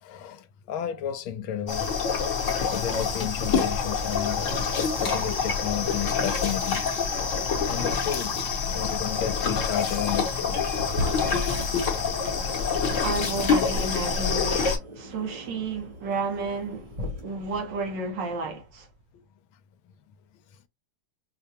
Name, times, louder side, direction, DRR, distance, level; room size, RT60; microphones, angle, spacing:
voice 1, 0.0-1.9 2.7-4.6 5.0-6.8 7.6-8.4 8.7-10.6 11.2-12.3 12.6-12.7, left 9 dB, 80° left, 1.3 m, -32 dB
sound 1, 1.7-14.8, left 5 dB, 50° left, 1.0 m, -26 dB
sound 2, 9.9-10.2 10.5-19.0, left 1 dB, 45° right, 0.4 m, -38 dB
voice 2, 13.0-16.9 17.2-18.9, right 3 dB, 65° right, 1.3 m, -31 dB
5.0 x 2.2 x 2.8 m
omnidirectional pair, 2.3 m